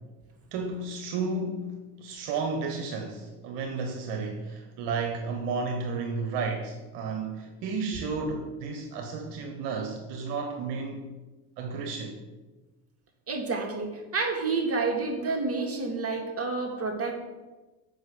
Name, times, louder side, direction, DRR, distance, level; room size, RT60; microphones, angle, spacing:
voice 1, 0.5-11.1 11.6-12.2, right 4 dB, 65° right, 3 dB, 1.2 m, -32 dB
voice 2, 13.3-17.2, right 3 dB, 30° right, 1 dB, 2.3 m, -29 dB
7.7 x 5.3 x 6.1 m, 1.2 s
hypercardioid pair, 75°, 44 cm